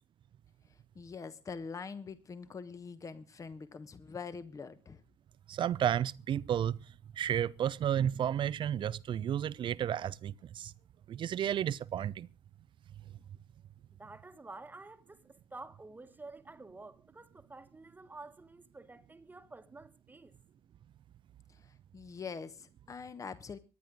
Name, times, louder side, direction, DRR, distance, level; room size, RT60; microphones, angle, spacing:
voice 1, 0.9-5.0 21.5-23.6, left 5 dB, 25° left, 1.2 m, -44 dB
voice 2, 5.5-6.8 7.2-10.7 11.1-12.3, right 10 dB, 40° right, 0.7 m, -32 dB
voice 3, 13.9-20.4, right 3 dB, 15° right, 1.4 m, -50 dB
24.5 x 10.0 x 3.7 m
figure-of-eight pair, 55°, 13 cm